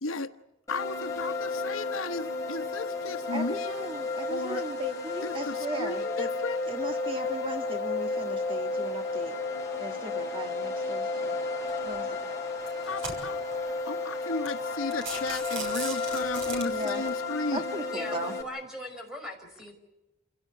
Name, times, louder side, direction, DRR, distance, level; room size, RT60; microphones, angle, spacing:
voice 1, 0.7-3.9 4.3-4.6 5.2-6.6 12.8-13.4 13.9-17.6, left 3 dB, 90° left, 8 dB, 1.2 m, -35 dB
sound 1, 0.7-18.4, left 3 dB, 15° left, 5.4 m, -32 dB
voice 2, 3.3-6.3 6.6-9.4 9.8-11.4 11.8-12.3 16.7-17.0 17.5-18.3, right 1 dB, 25° right, 4 dB, 1.8 m, -37 dB
sound 2, 11.7-12.0 12.6-13.5 14.1-14.2 14.5-14.6 14.9-17.1, right 4 dB, 75° right, 6.6 m, -38 dB
voice 3, 17.9-19.7, left 1 dB, 5° right, 3 dB, 5.5 m, -40 dB
29.0 x 17.0 x 8.5 m, 1.0 s
head